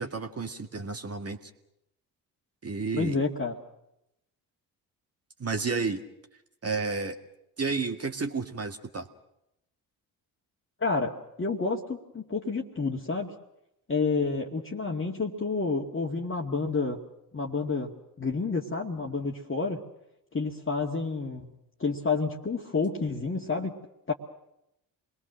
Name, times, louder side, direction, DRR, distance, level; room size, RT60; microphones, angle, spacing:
voice 1, 0.0-1.4 2.6-3.2 5.4-6.0 6.6-7.2 7.6-9.1, right 4 dB, 30° right, 5 dB, 1.9 m, -31 dB
voice 2, 2.9-3.6 10.8-13.3 13.9-17.0 17.3-19.8 20.3-23.8 24.1-24.2, left 4 dB, 25° left, 0 dB, 2.1 m, -29 dB
28.0 x 21.5 x 6.4 m, 0.83 s
figure-of-eight pair, 45°, 48 cm